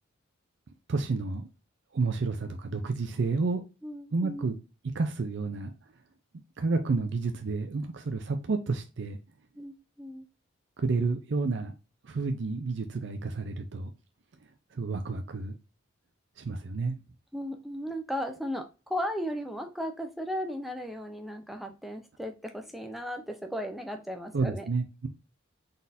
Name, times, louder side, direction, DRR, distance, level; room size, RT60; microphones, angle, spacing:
voice 1, 0.9-1.5 1.9-3.6 4.1-4.5 4.9-5.7 6.6-9.2 10.8-11.7 12.0-13.9 14.7-15.6 16.4-17.0 24.3-25.1, right 3 dB, 55° right, 0.4 m, -30 dB
voice 2, 3.8-4.5 9.6-10.2 17.3-24.7, equal, ahead, 0.5 m, -36 dB
4.0 x 3.7 x 2.6 m
head